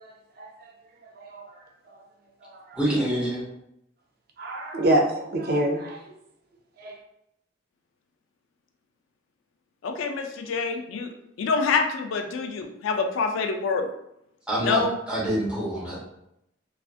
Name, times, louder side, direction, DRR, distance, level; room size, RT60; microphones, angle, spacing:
voice 1, 2.7-3.4 14.5-16.0, right 1 dB, 5° right, -7 dB, 0.7 m, -26 dB
voice 2, 4.4-6.0 6.8-6.9, right 1 dB, 50° right, 1 dB, 0.4 m, -25 dB
voice 3, 9.8-11.1 11.4-13.9 14.6-15.0, left 4 dB, 85° left, 5 dB, 0.3 m, -26 dB
2.5 x 2.4 x 2.4 m, 0.81 s
head